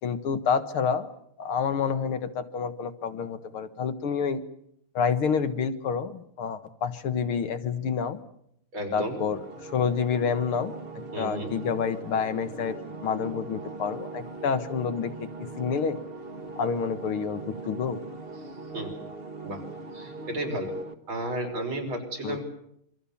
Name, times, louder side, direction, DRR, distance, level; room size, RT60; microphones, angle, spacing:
voice 1, 0.0-1.1 1.4-4.4 4.9-8.2 8.9-10.7 11.2-12.8 13.0-15.3 15.6-16.0 16.6-18.0 22.2-22.4, left 6 dB, 80° left, 9 dB, 2.3 m, -28 dB
voice 2, 8.7-9.2 11.1-11.6 18.7-19.0 19.4-19.6 19.9-20.8 21.1-22.4, right 1 dB, 70° right, 2 dB, 6.3 m, -33 dB
sound 1, 9.0-20.9, right 3 dB, 30° right, 1.5 m, -40 dB
27.0 x 24.5 x 7.2 m, 0.74 s
omnidirectional pair, 2.3 m